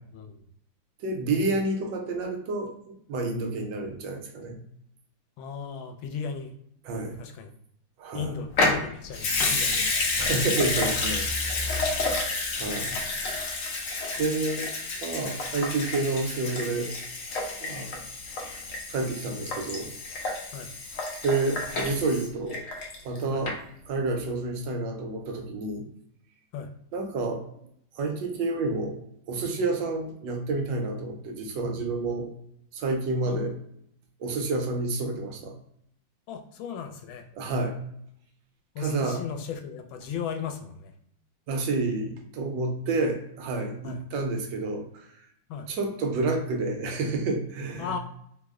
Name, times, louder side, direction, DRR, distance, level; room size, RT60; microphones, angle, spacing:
voice 1, 1.0-4.6 6.8-7.2 8.0-8.3 9.7-9.8 10.2-11.8 12.5-13.0 14.2-14.7 15.0-16.9 17.6-18.1 18.9-19.9 21.2-22.6 23.0-23.6 23.9-25.8 26.9-27.4 27.9-29.0 29.3-32.3 32.7-33.5 34.2-35.5 37.3-37.8 38.8-39.2 41.5-45.1 45.7-47.9, right 3 dB, 75° right, 3 dB, 1.3 m, -29 dB
voice 2, 5.4-6.5 7.2-7.5 8.1-9.8 20.5-20.7 23.3-23.4 26.5-26.7 33.2-33.4 36.3-37.2 38.7-40.9 43.8-44.0 45.5-45.7 47.8-48.0, left 6 dB, 85° left, 6 dB, 1.4 m, -36 dB
Water tap faucet / Sink (filling or washing) / Liquid, 8.5-23.2 23.5-23.6, left 3 dB, 65° left, 0.8 m, -30 dB
3.4 x 2.0 x 3.5 m, 0.71 s
omnidirectional pair, 2.1 m